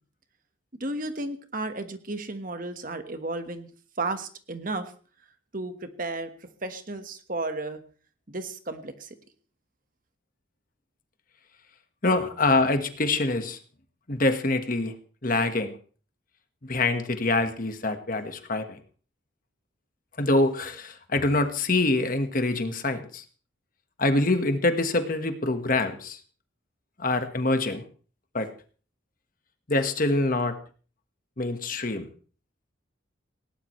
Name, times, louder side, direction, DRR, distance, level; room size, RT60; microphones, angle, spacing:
voice 1, 0.8-3.7 4.0-4.9 5.5-6.3 6.6-7.8 8.3-9.1, right 2 dB, 45° right, 8 dB, 1.4 m, -33 dB
voice 2, 12.0-13.6 14.1-14.9 15.2-15.7 16.6-18.8 20.2-23.2 24.0-26.2 27.0-27.8 28.3-28.5 29.7-30.6 31.4-32.1, left 2 dB, 45° left, 8 dB, 1.5 m, -25 dB
19.5 x 17.0 x 3.2 m, 0.40 s
head